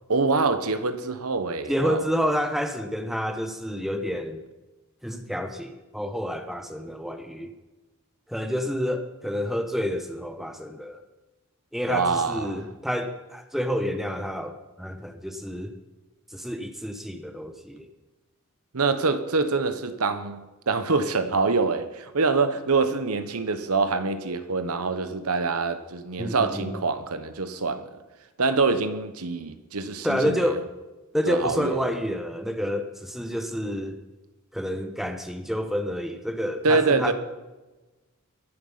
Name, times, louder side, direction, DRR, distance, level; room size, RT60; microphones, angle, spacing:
voice 1, 0.1-2.0 11.9-12.6 18.7-28.0 28.4-30.4 31.2-31.9 36.6-37.1, right 4 dB, 85° right, 1.1 m, -25 dB
voice 2, 1.7-4.4 5.0-7.5 8.3-11.0 11.7-15.8 16.3-17.9 26.2-26.8 30.0-30.7 31.1-34.0 34.5-37.1, equal, ahead, 1.1 m, -29 dB
22.0 x 7.6 x 5.6 m
head